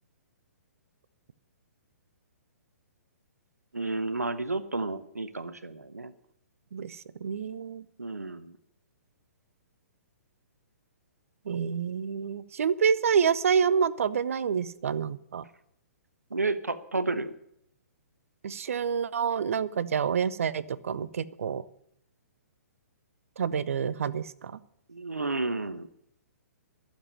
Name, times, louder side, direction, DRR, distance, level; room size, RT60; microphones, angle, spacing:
voice 1, 3.7-6.1 8.0-8.6 16.3-17.3 24.9-25.9, right 3 dB, 80° right, 12 dB, 1.1 m, -31 dB
voice 2, 6.7-7.8 11.5-15.4 18.4-21.6 23.4-24.6, right 7 dB, 60° right, 17 dB, 0.7 m, -28 dB
12.0 x 7.4 x 9.8 m, 0.75 s
figure-of-eight pair, 120°, 8 cm